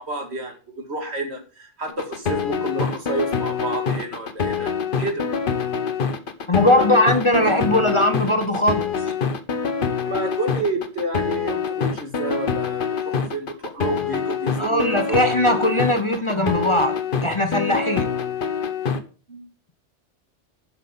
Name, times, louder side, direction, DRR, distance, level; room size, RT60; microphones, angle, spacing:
voice 1, 0.0-4.7 5.0-5.3 9.9-15.2 19.3-19.5, right 2 dB, 65° right, 2.4 m, -30 dB
sound 1, 1.9-19.0, left 6 dB, 50° left, 1.1 m, -25 dB
voice 2, 6.5-8.9 14.6-16.9 17.2-18.1, left 1 dB, 30° left, 0.8 m, -19 dB
8.1 x 5.9 x 6.9 m
omnidirectional pair, 1.2 m